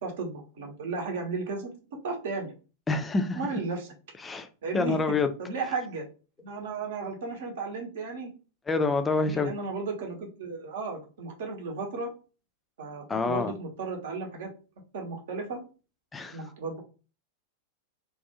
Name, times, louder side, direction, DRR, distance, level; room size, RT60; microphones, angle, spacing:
voice 1, 0.0-1.7 2.0-2.5 3.3-3.9 4.6-5.0 5.4-6.1 6.4-8.3 9.2-12.1 12.8-14.5 14.9-15.6 16.3-16.8, right 4 dB, 55° right, 0.8 m, -34 dB
voice 2, 2.9-3.4 4.2-4.5 4.7-5.3 8.7-9.5 13.1-13.5 16.1-16.4, left 3 dB, 15° left, 0.4 m, -27 dB
2.5 x 2.2 x 2.8 m
figure-of-eight pair, 90°, 0 cm